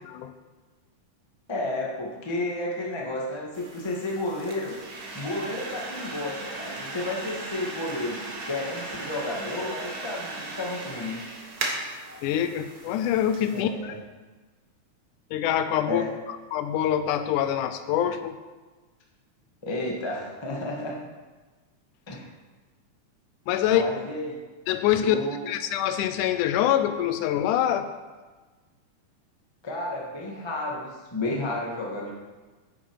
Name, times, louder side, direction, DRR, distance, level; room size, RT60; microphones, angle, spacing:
voice 1, 1.5-4.8 5.1-11.2 13.5-14.0 15.9-16.1 19.6-21.0 22.1-22.3 23.6-24.4 25.0-25.5 29.6-32.1, left 2 dB, 20° left, -2 dB, 0.6 m, -32 dB
sound 1, 3.5-13.6, right 2 dB, 55° right, 1.1 m, -37 dB
voice 2, 12.2-13.9 15.3-16.0 16.3-18.4 23.5-23.8 24.7-27.9, left 10 dB, 85° left, 10 dB, 2.1 m, -25 dB
9.9 x 8.5 x 4.7 m, 1.3 s
omnidirectional pair, 3.6 m